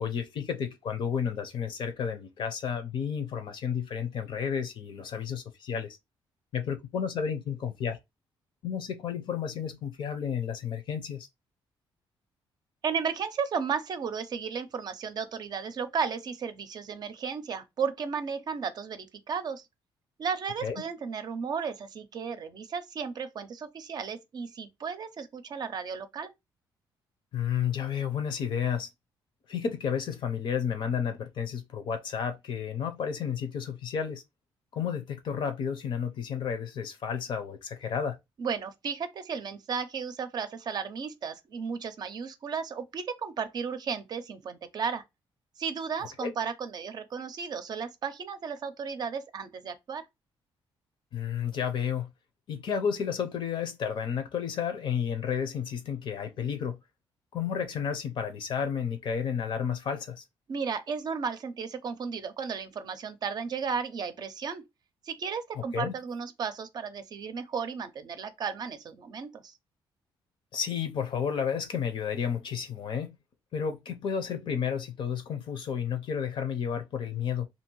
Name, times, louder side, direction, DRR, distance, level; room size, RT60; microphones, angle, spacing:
voice 1, 0.0-6.0 6.5-8.0 8.6-11.3 20.6-20.8 27.3-28.9 29.5-34.2 34.7-38.2 46.2-46.3 51.1-52.1 52.5-56.8 57.3-60.2 65.5-65.9 70.5-73.2 73.5-77.5, left 7 dB, 60° left, 0.7 m, -31 dB
voice 2, 12.8-19.6 20.2-26.3 38.4-45.0 45.6-50.1 60.5-64.6 65.0-69.5, right 6 dB, 50° right, 0.5 m, -34 dB
2.7 x 2.6 x 3.0 m
cardioid pair, 120°, 9 cm